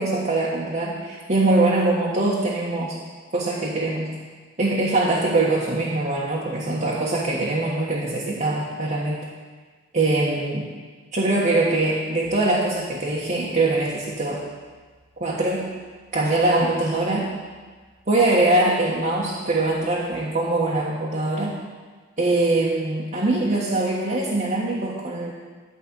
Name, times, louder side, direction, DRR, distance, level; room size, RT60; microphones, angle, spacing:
voice 1, 0.0-3.0 3.3-4.1 4.6-9.3 9.9-10.7 11.1-14.4 15.2-15.7 16.1-17.3 18.1-21.6 22.2-25.3, right 2 dB, 40° right, -6 dB, 1.5 m, -22 dB
sound 1, 12.2-20.1, equal, 20° left, 1.2 m, -60 dB
12.5 x 5.3 x 8.5 m, 1.4 s
head